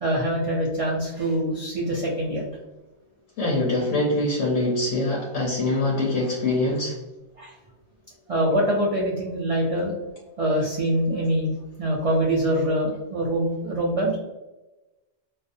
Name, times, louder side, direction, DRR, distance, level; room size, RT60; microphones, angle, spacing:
voice 1, 0.0-2.4 7.4-7.5 8.3-9.9 10.4-14.2, right 1 dB, 60° right, -3 dB, 0.4 m, -24 dB
voice 2, 3.4-7.0, left 2 dB, 90° left, -2 dB, 0.9 m, -24 dB
2.5 x 2.1 x 2.5 m, 1.1 s
omnidirectional pair, 1.2 m